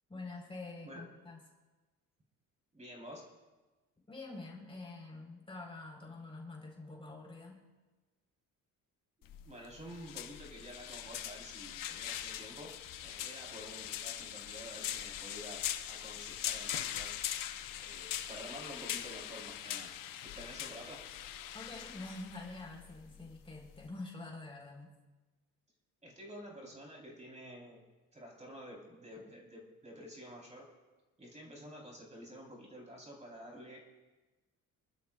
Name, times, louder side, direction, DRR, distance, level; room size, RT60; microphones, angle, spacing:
voice 1, 0.1-1.4 4.1-7.6 21.5-24.9, left 2 dB, 15° left, -1 dB, 4.3 m, -46 dB
voice 2, 2.7-3.3 9.2-12.7 13.0-17.1 17.8-19.9 20.2-21.0 26.0-27.8 28.1-30.7 31.2-33.8, equal, 20° right, -2 dB, 3.9 m, -50 dB
sound 1, 9.2-23.9, left 11 dB, 75° left, 0.9 m, -42 dB
27.5 x 12.5 x 2.4 m, 1.2 s
cardioid pair, 105°, 33 cm